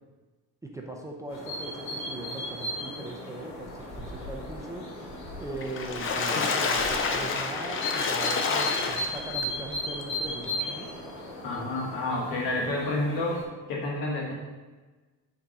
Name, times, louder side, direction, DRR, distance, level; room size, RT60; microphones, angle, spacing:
voice 1, 0.6-4.9 5.4-10.9, right 2 dB, 10° right, 0 dB, 0.4 m, -40 dB
sound 1, 1.3-13.4, left 1 dB, 50° left, 1.9 m, -36 dB
Water / Splash splatter, 5.6-9.4 10.0-10.1 10.4-10.5, left 4 dB, 35° left, 0.6 m, -28 dB
voice 2, 11.4-13.4 13.7-14.3, left 2 dB, 80° left, -3 dB, 2.1 m, -29 dB
8.5 x 3.7 x 4.1 m, 1.3 s
cardioid pair, 170°, 35 cm